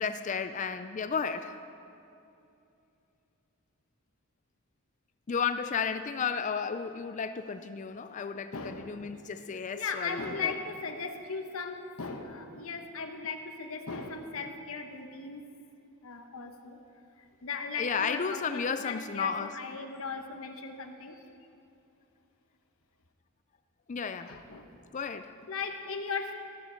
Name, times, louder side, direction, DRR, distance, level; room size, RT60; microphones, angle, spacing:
voice 1, 0.0-1.6 5.3-10.5 17.8-19.5 23.9-24.4 24.9-25.3, left 6 dB, 35° left, 11 dB, 0.4 m, -33 dB
voice 2, 8.5-9.1 9.8-15.4 16.0-16.8 17.4-21.2 24.3-24.7 25.5-26.3, left 5 dB, 70° left, 5 dB, 1.0 m, -37 dB
14.0 x 13.5 x 4.4 m, 2.7 s
head